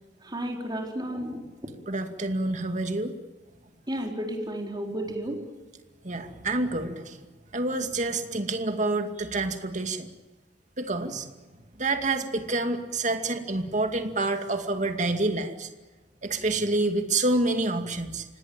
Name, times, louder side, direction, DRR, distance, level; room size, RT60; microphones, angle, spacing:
voice 1, 0.2-1.4 3.9-5.4, right 1 dB, 25° right, 1 dB, 4.6 m, -32 dB
voice 2, 1.9-3.1 6.0-7.3 7.5-10.1 10.8-11.3 11.8-15.7 16.2-18.3, right 2 dB, 40° right, 6 dB, 2.4 m, -28 dB
26.0 x 19.0 x 8.9 m, 1.2 s
head